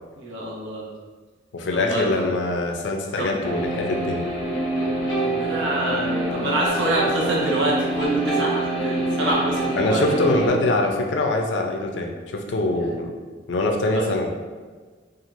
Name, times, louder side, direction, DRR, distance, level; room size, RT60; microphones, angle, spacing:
voice 1, 0.1-0.9 1.8-2.2 3.2-3.3 5.2-10.0 12.8-12.9 13.9-14.1, right 1 dB, 85° right, -4 dB, 0.7 m, -26 dB
voice 2, 1.5-4.2 9.8-13.1 13.5-14.3, left 2 dB, 70° left, 2 dB, 0.4 m, -23 dB
sound 1, 3.4-10.5, right 1 dB, 25° left, 0.7 m, -26 dB
2.9 x 2.4 x 2.5 m, 1.4 s
head